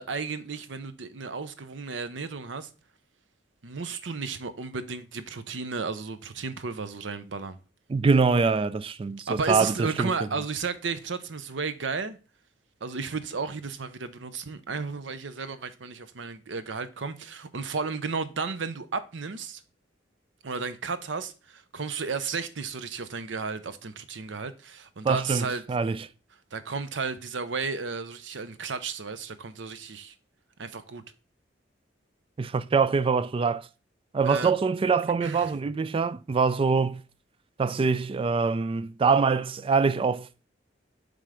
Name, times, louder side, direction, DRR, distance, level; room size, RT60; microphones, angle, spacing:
voice 1, 0.0-2.7 3.6-7.6 9.3-12.2 12.8-19.6 20.4-25.6 26.5-30.1 30.6-31.0 34.2-34.5 35.0-35.5, right 4 dB, 90° right, 0.7 m, -33 dB
voice 2, 7.9-10.1 25.0-26.1 32.4-33.7 34.1-37.0 37.6-40.3, right 5 dB, 30° right, 0.3 m, -24 dB
7.5 x 3.5 x 5.0 m
head